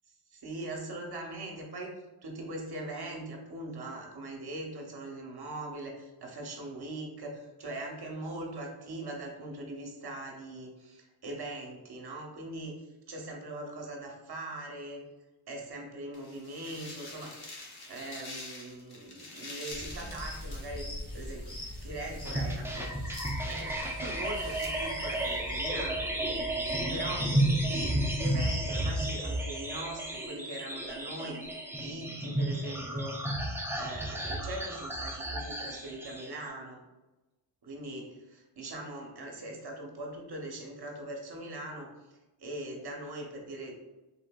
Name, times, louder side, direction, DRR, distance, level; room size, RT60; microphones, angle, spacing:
voice 1, 0.3-1.9 2.2-15.0 15.5-21.5 21.8-26.0 26.8-31.4 31.8-36.8 37.6-41.9 42.4-43.7, right 2 dB, 50° right, 1 dB, 0.9 m, -41 dB
sound 1, 16.1-25.6, left 2 dB, 50° left, 0.9 m, -48 dB
sound 2, 19.7-29.0, left 1 dB, 25° left, 1.4 m, -41 dB
sound 3, 22.2-36.4, right 1 dB, 5° right, 0.4 m, -32 dB
3.5 x 2.5 x 2.2 m, 1.1 s
cardioid pair, 45°, 50 cm